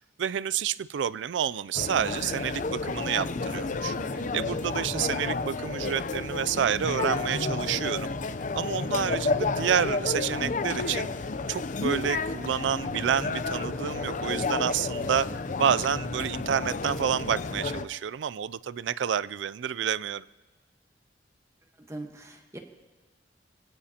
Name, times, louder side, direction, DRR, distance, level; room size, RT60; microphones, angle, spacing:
voice 1, 0.2-3.9 4.3-8.1 8.5-11.1 11.5-15.3 15.6-20.2, right 8 dB, 80° right, 18 dB, 0.4 m, -29 dB
sound 1, 1.7-17.9, left 3 dB, 45° left, 0.6 m, -31 dB
voice 2, 21.9-22.6, right 1 dB, 15° right, 4 dB, 1.3 m, -41 dB
23.5 x 17.0 x 2.9 m, 1.3 s
head